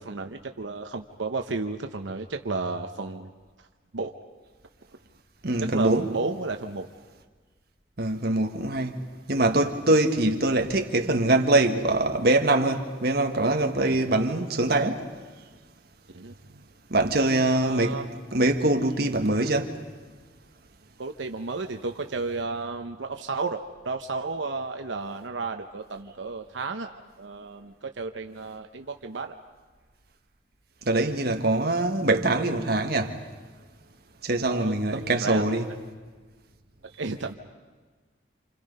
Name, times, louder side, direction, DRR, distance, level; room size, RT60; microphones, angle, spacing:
voice 1, 0.0-3.3 3.6-3.7 3.9-4.1 5.6-6.9 13.9-14.1 16.1-16.6 17.5-18.0 21.0-29.3 34.5-35.4 36.8-37.3, right 3 dB, 85° right, 0.9 m, -33 dB
voice 2, 5.4-6.1 8.0-9.0 9.3-15.1 16.9-18.0 18.3-19.8 30.9-33.2 34.2-35.6, right 2 dB, 60° right, 1.6 m, -23 dB
29.5 x 27.5 x 5.5 m
head